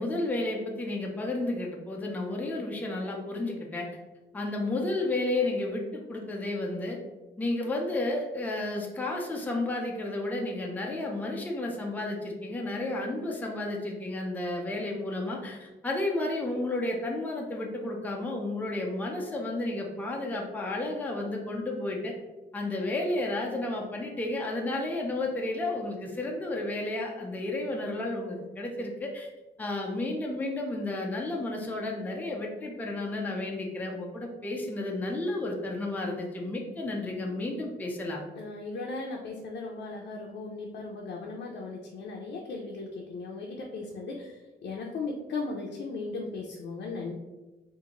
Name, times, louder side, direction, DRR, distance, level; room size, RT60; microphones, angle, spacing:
voice 1, 0.0-3.9 4.3-7.0 7.4-22.1 22.5-29.3 29.6-38.2, left 2 dB, 10° left, 0 dB, 0.4 m, -32 dB
voice 2, 38.3-47.1, left 3 dB, 80° left, -1 dB, 0.5 m, -37 dB
3.7 x 2.5 x 2.9 m, 1.1 s
wide cardioid pair, 170°, 18 cm